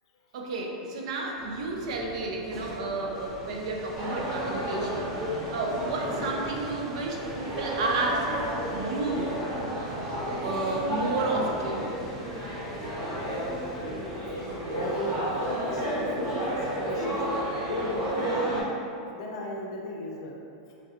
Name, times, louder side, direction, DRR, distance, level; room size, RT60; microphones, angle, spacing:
voice 1, 0.3-8.3 8.7-9.4 10.4-11.9, right 3 dB, 65° right, 0 dB, 0.5 m, -31 dB
Engine, 1.3-18.0, right 2 dB, 10° right, 0.8 m, -51 dB
sound 1, 2.2-18.9, left 1 dB, 15° left, 0.5 m, -47 dB
sound 2, 4.0-18.6, right 1 dB, 40° right, 1.1 m, -32 dB
voice 2, 6.0-6.3 13.2-13.8 14.7-18.7 19.1-20.4, left 1 dB, 65° left, -1 dB, 0.5 m, -36 dB
3.1 x 2.5 x 2.8 m, 2.6 s
supercardioid pair, 170°, 3 cm